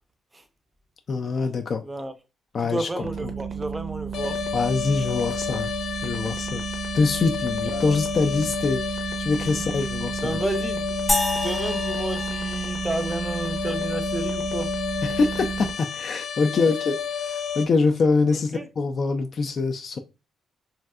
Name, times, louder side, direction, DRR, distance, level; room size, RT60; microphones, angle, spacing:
voice 1, 1.1-1.8 2.5-2.9 4.5-5.7 6.0-6.6 6.9-10.3 15.0-20.0, left 4 dB, 50° left, 0.3 m, -24 dB
voice 2, 1.8-2.1 2.6-4.4 7.6-8.0 9.5-9.7 10.2-10.8 11.4-14.7 18.3-18.7, right 2 dB, 15° right, 0.5 m, -31 dB
sound 1, 3.0-15.7, right 6 dB, 65° right, 0.6 m, -32 dB
sound 2, 4.1-17.7, left 7 dB, 75° left, 0.7 m, -31 dB
sound 3, 11.1-13.5, left 2 dB, 20° left, 0.8 m, -29 dB
3.1 x 2.7 x 2.3 m
cardioid pair, 90°, 0 cm